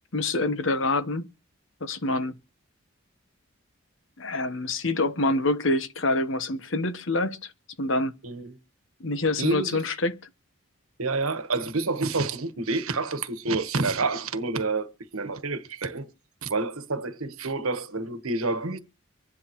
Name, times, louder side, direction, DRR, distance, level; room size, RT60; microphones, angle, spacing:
voice 1, 0.1-1.3 1.8-2.4 4.2-7.5 7.8-8.1 9.0-10.2, left 2 dB, 65° left, 1.1 m, -26 dB
voice 2, 8.2-8.6 9.4-9.8 11.0-16.1 16.4-18.8, right 3 dB, 90° right, 1.3 m, -28 dB
25.0 x 10.5 x 3.1 m
head